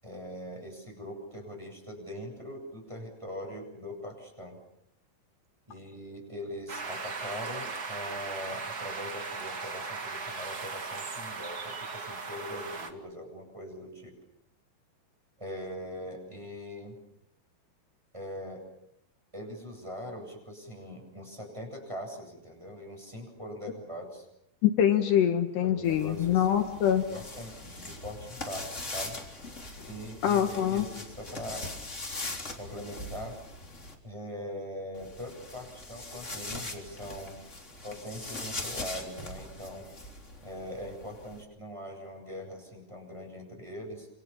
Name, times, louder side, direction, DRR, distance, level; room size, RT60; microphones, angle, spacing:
voice 1, 0.0-4.6 5.7-14.2 15.4-17.0 18.1-18.6 19.3-24.3 25.6-26.5 27.1-29.2 29.9-31.7 32.6-33.4 34.0-37.4 37.8-39.9 40.4-44.1, equal, 5° right, 1 dB, 7.6 m, -42 dB
sound 1, 6.7-12.9, right 4 dB, 40° right, 1.5 m, -38 dB
voice 2, 24.6-27.1 30.2-30.9, left 10 dB, 70° left, 5 dB, 3.7 m, -24 dB
sound 2, 25.8-33.9 34.9-41.4, left 2 dB, 15° left, 3.5 m, -41 dB
28.5 x 27.5 x 7.3 m, 0.82 s
omnidirectional pair, 5.1 m